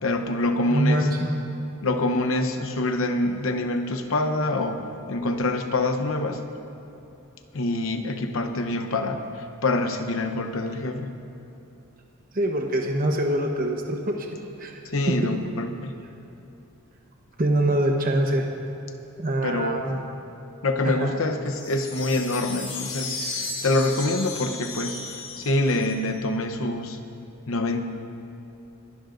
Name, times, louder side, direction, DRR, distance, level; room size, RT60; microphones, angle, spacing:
voice 1, 0.0-1.1 1.8-6.4 7.5-11.1 14.9-15.9 19.4-19.9 20.6-27.0 27.5-27.8, left 2 dB, 65° left, 7 dB, 0.9 m, -26 dB
voice 2, 0.7-1.3 12.3-14.3 14.6-14.8 15.1-15.2 17.4-18.5 19.2-20.0 20.8-21.1, right 1 dB, 40° right, 2 dB, 1.0 m, -24 dB
sound 1, 21.5-26.2, left 3 dB, 85° left, 3.5 m, -35 dB
24.5 x 12.0 x 2.6 m, 2.9 s
head